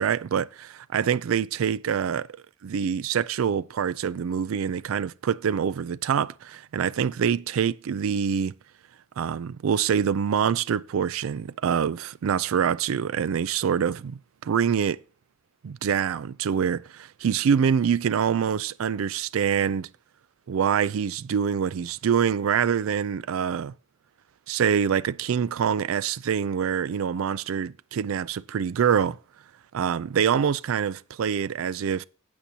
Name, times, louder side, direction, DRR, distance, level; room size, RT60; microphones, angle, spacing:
voice 1, 0.0-0.5 0.9-2.3 2.6-8.5 9.2-15.0 15.6-19.9 20.5-23.7 24.5-29.2 29.7-32.0, right 7 dB, 80° right, 0.4 m, -25 dB
12.5 x 8.5 x 2.8 m
head